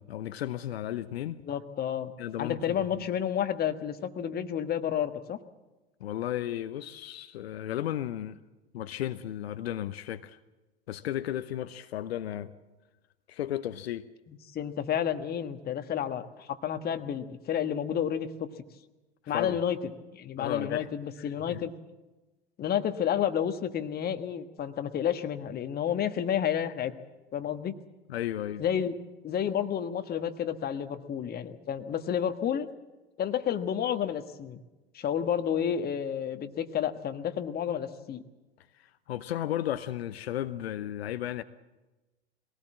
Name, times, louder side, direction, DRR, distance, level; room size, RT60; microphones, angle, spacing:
voice 1, 0.0-1.4 2.2-3.0 6.0-8.4 8.7-10.4 10.9-12.5 13.3-14.1 19.2-19.6 20.4-20.9 21.2-21.6 28.1-28.6 38.7-41.4, left 12 dB, 65° left, 0.9 m, -34 dB
voice 2, 1.5-2.1 2.4-5.4 14.3-18.5 19.3-19.8 20.1-21.7 22.6-26.9 27.3-27.7 28.6-28.9 29.2-32.7 33.2-34.6 34.9-38.2, left 9 dB, 30° left, 1.4 m, -30 dB
22.0 x 17.5 x 7.5 m
figure-of-eight pair, 90°, 33 cm